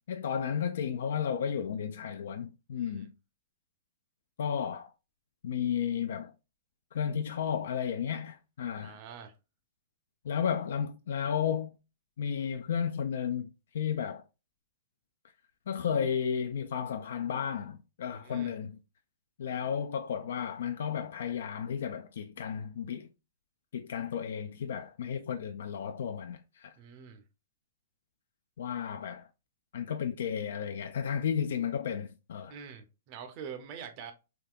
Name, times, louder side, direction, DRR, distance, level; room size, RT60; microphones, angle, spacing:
voice 1, 0.0-3.1 4.4-4.9 5.4-6.3 6.9-9.0 10.2-11.8 12.2-13.5 13.7-14.2 15.7-18.8 19.4-23.1 23.7-26.7 28.6-29.3 29.7-32.5, left 8 dB, 70° left, 0.3 m, -33 dB
voice 2, 2.8-3.1 8.8-9.3 18.1-18.5 26.8-27.2 32.5-34.1, right 7 dB, 35° right, 0.5 m, -45 dB
3.5 x 2.7 x 2.3 m
hypercardioid pair, 165°, 0 cm